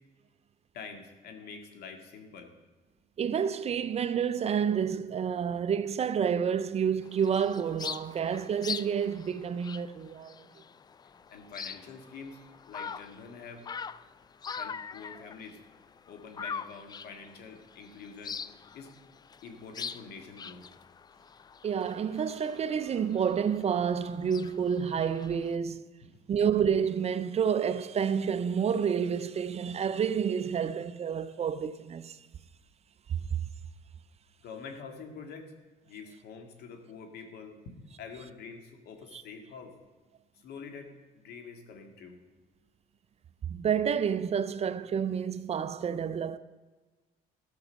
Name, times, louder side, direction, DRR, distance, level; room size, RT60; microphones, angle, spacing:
voice 1, 0.7-2.5 11.3-12.4 12.7-13.6 14.5-15.6 16.1-18.4 18.7-18.9 19.4-20.7 26.0-26.1 34.4-35.5 35.9-39.7 40.3-42.2, left 5 dB, 70° left, 1.9 m, -46 dB
voice 2, 3.2-10.4 21.6-25.9 26.3-32.2 33.1-33.4 39.1-39.2 43.5-46.4, right 7 dB, 40° right, 0.5 m, -29 dB
sound 1, 7.0-25.6, left 6 dB, 25° left, 0.3 m, -43 dB
14.0 x 6.3 x 6.3 m
cardioid pair, 110°, 17 cm